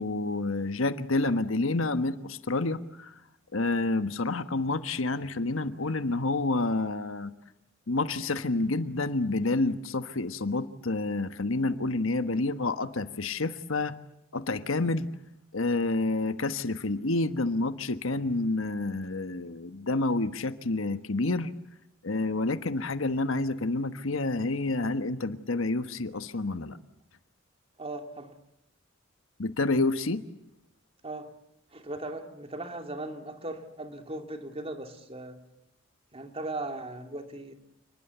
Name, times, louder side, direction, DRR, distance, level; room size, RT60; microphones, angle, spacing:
voice 1, 0.0-3.1 3.5-7.3 7.9-14.0 14.3-15.1 15.5-21.5 22.0-26.8 29.4-30.2, left 2 dB, 85° left, 1.3 m, -29 dB
voice 2, 27.8-28.3 31.0-31.3 31.7-35.4 36.1-37.5, right 2 dB, 30° right, 2.5 m, -38 dB
29.5 x 20.5 x 8.2 m
head